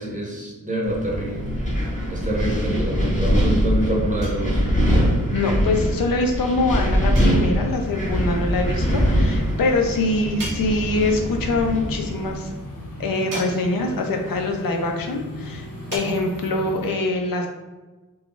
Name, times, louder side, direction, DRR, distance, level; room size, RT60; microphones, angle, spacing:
voice 1, 0.0-1.8 2.1-4.7, right 1 dB, 25° right, -2 dB, 0.6 m, -26 dB
Wind, 0.8-12.4, equal, 25° left, 0.6 m, -23 dB
sound 1, 4.2-5.0 7.2-7.9 10.4-11.3 13.3-14.1 15.9-16.0, right 1 dB, 70° right, 0.7 m, -37 dB
voice 2, 5.3-12.5 13.0-17.5, left 2 dB, 85° left, 3 dB, 0.5 m, -24 dB
sound 2, 7.7-16.9, left 1 dB, 45° left, 0.9 m, -36 dB
2.4 x 2.3 x 2.9 m, 1.2 s
wide cardioid pair, 135°, 33 cm